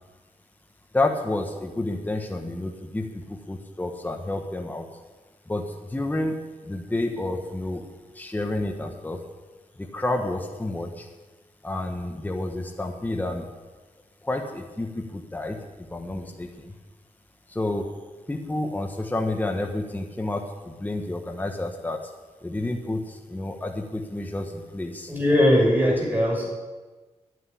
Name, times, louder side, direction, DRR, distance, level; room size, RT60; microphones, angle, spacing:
voice 1, 0.9-4.9 5.5-7.8 8.1-9.3 9.8-11.1 11.6-13.5 14.2-16.7 17.5-18.0 18.3-22.1 22.4-25.1 26.0-26.2, left 2 dB, 15° left, 3 dB, 1.4 m, -30 dB
voice 2, 25.1-26.5, left 1 dB, 15° right, -2 dB, 6.1 m, -20 dB
11.0 x 9.5 x 9.8 m, 1.3 s
wide cardioid pair, 115°, 13 cm